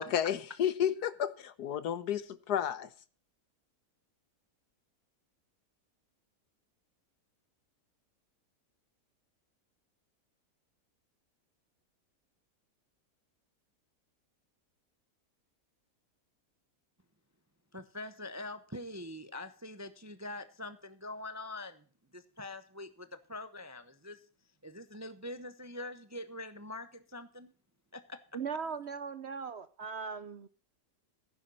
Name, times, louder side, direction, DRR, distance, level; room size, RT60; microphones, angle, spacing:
voice 1, 0.0-2.9, left 9 dB, 80° left, 1.5 m, -32 dB
voice 2, 17.7-21.9 22.1-24.3 24.6-27.5 27.9-28.3, left 2 dB, 20° right, 0.5 m, -44 dB
voice 3, 28.3-30.5, right 5 dB, 55° right, 0.8 m, -39 dB
15.0 x 10.0 x 4.3 m
omnidirectional pair, 1.7 m